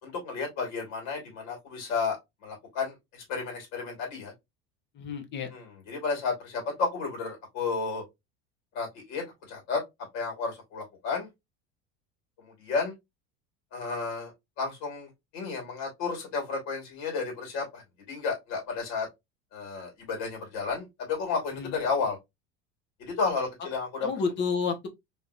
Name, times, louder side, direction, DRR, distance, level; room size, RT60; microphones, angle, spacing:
voice 1, 0.0-4.3 5.5-8.0 8.7-9.8 10.1-11.3 12.4-12.9 13.7-14.3 14.6-19.1 19.5-22.2 23.0-24.1, left 4 dB, 60° left, 2.2 m, -32 dB
voice 2, 4.9-5.5 21.5-21.8 24.0-24.9, left 5 dB, 35° left, 0.9 m, -30 dB
3.4 x 2.9 x 2.4 m
supercardioid pair, 135°, 31 cm